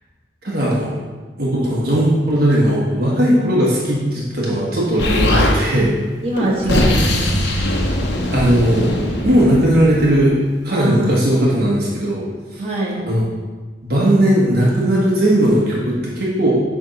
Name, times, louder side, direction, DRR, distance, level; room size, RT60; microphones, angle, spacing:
voice 1, 0.4-1.0 1.4-5.9 6.8-7.0 8.3-8.9 9.2-10.3 10.6-12.6 13.0-13.2 13.8-16.6, right 1 dB, 55° right, -5 dB, 1.4 m, -17 dB
Explosion, 5.0-5.6 6.3-10.2, left 1 dB, 70° left, 1.0 m, -20 dB
voice 2, 6.2-7.5 10.7-11.1 12.6-13.0, right 1 dB, 35° right, -6 dB, 1.6 m, -23 dB
8.5 x 3.6 x 5.3 m, 1.4 s
head